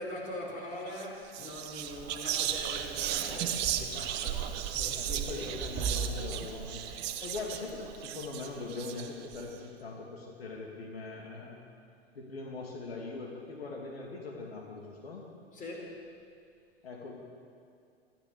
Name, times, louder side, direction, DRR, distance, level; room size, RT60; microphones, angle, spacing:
voice 1, 0.0-5.6 6.9-7.0 15.5-16.0, left 1 dB, 25° left, 0 dB, 4.9 m, -42 dB
Whispering, 0.9-1.1 1.3-9.4, right 9 dB, 35° right, 1.3 m, -35 dB
voice 2, 4.9-11.6 12.1-15.3 16.8-17.2, left 3 dB, 70° left, -1 dB, 2.9 m, -41 dB
24.5 x 15.0 x 7.0 m, 2.3 s
figure-of-eight pair, 95°, 31 cm